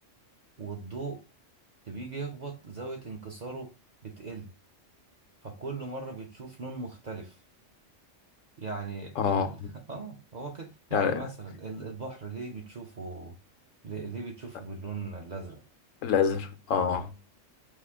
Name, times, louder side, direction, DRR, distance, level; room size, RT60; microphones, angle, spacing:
voice 1, 0.6-1.2 1.8-3.7 4.0-4.5 5.4-7.4 8.6-13.4 13.8-15.6, right 3 dB, 45° right, 0.6 m, -39 dB
voice 2, 9.2-9.7 10.9-11.1 16.0-17.3, left 6 dB, 85° left, 1.1 m, -27 dB
4.8 x 2.5 x 3.4 m
omnidirectional pair, 1.3 m